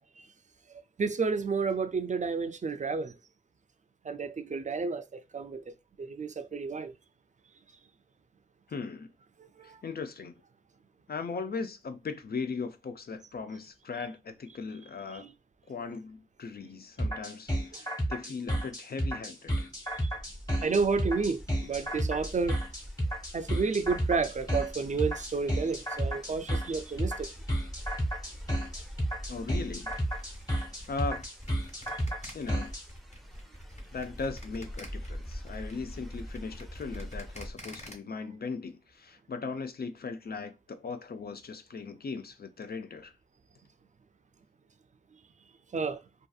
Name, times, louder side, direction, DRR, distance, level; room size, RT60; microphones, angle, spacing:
voice 1, 1.0-3.1 4.0-5.7 6.0-6.9 9.6-9.8 15.1-15.3 17.7-17.8 20.0-20.1 20.6-22.6 23.3-27.3 45.7-46.0, right 4 dB, 50° right, 0.4 m, -31 dB
voice 2, 8.7-9.1 9.6-10.3 11.1-15.3 15.7-19.7 29.3-29.9 30.9-31.3 32.3-32.7 33.9-43.1, left 4 dB, 75° left, 0.5 m, -38 dB
sound 1, 17.0-32.8, equal, 20° left, 1.2 m, -32 dB
sound 2, 19.7-37.5, equal, ahead, 0.6 m, -45 dB
sound 3, 29.9-37.9, equal, 45° left, 1.2 m, -48 dB
2.6 x 2.5 x 2.3 m
wide cardioid pair, 45°, 16 cm